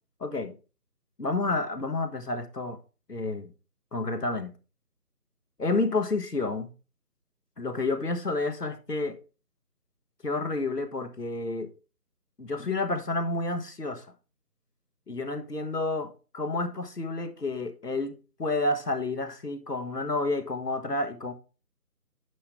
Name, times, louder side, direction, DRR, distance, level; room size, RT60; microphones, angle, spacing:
voice 1, 0.2-0.6 1.2-2.8 3.1-3.5 3.9-4.5 5.6-6.7 7.6-9.2 10.2-11.7 12.4-14.1 15.1-21.3, left 2 dB, 85° left, 1.5 m, -30 dB
9.9 x 6.0 x 3.5 m
figure-of-eight pair, 160°, 47 cm